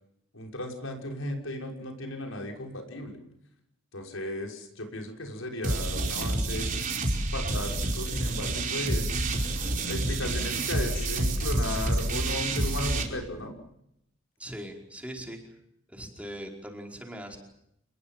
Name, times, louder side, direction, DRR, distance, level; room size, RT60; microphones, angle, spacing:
voice 1, 0.3-3.2 3.9-6.7 7.3-9.1 9.9-13.5, left 1 dB, 90° left, 3 dB, 6.2 m, -35 dB
sound 1, 5.6-13.0, right 2 dB, 40° right, 4.9 m, -28 dB
voice 2, 14.4-15.6 15.9-17.4, equal, 5° right, 2 dB, 4.9 m, -40 dB
29.0 x 21.0 x 7.5 m, 0.77 s
head